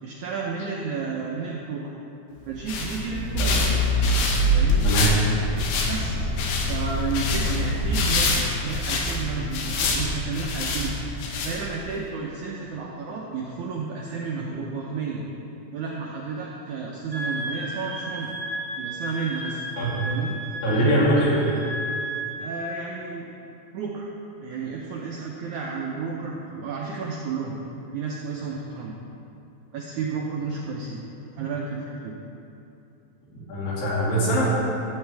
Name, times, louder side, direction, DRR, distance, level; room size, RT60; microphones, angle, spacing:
voice 1, 0.0-2.0 2.5-3.5 4.5-4.9 5.8-6.2 6.7-15.2 15.7-18.3 18.8-19.6 20.0-20.4 22.4-23.3 23.7-24.1 24.3-27.6 27.9-29.0 29.7-31.0 31.4-32.2, right 4 dB, 80° right, -2 dB, 1.7 m, -32 dB
sound 1, 2.4-11.9, left 3 dB, 90° left, 3.1 m, -27 dB
Accelerating revving vroom, 3.3-8.7, equal, 5° right, 1.3 m, -25 dB
voice 2, 4.8-5.1 19.8-20.0 20.6-21.5 33.3-34.5, right 1 dB, 70° left, -7 dB, 4.1 m, -22 dB
Wind instrument woodwind instrument, 17.1-22.4, right 1 dB, 35° right, 1.2 m, -33 dB
14.0 x 8.2 x 3.4 m, 2.8 s
omnidirectional pair, 4.4 m